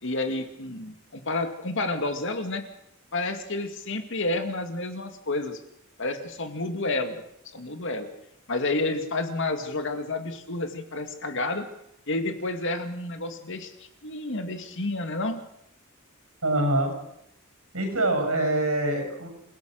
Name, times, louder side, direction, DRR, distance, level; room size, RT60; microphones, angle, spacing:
voice 1, 0.0-2.6 3.1-5.6 6.0-7.2 7.5-8.1 8.5-11.6 12.1-15.4, left 2 dB, 60° left, 7 dB, 2.3 m, -30 dB
voice 2, 16.4-16.9 17.7-19.3, right 1 dB, 85° right, 5 dB, 6.9 m, -24 dB
27.5 x 16.5 x 6.5 m, 0.76 s
head